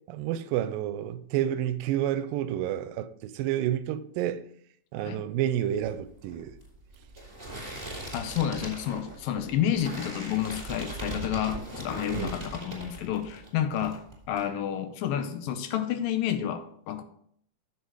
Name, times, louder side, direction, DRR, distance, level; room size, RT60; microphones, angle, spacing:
voice 1, 0.1-4.4 4.9-6.6 12.1-12.3, right 11 dB, 85° right, 2.2 m, -29 dB
sound 1, 5.8-13.5 13.8-14.4, right 1 dB, 10° right, 3.6 m, -39 dB
voice 2, 8.1-14.0 14.3-17.0, left 10 dB, 80° left, 2.4 m, -30 dB
7.8 x 7.1 x 4.7 m
omnidirectional pair, 4.1 m